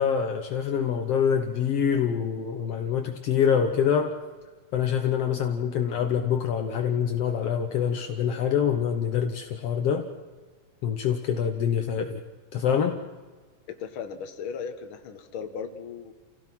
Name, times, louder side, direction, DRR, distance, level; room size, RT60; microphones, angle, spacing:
voice 1, 0.0-4.2 4.7-10.1 10.8-12.2 12.5-13.0, left 8 dB, 70° left, 5 dB, 1.4 m, -25 dB
voice 2, 13.7-16.1, left 6 dB, 50° left, 7 dB, 1.6 m, -37 dB
28.5 x 16.5 x 6.1 m, 1.4 s
omnidirectional pair, 4.3 m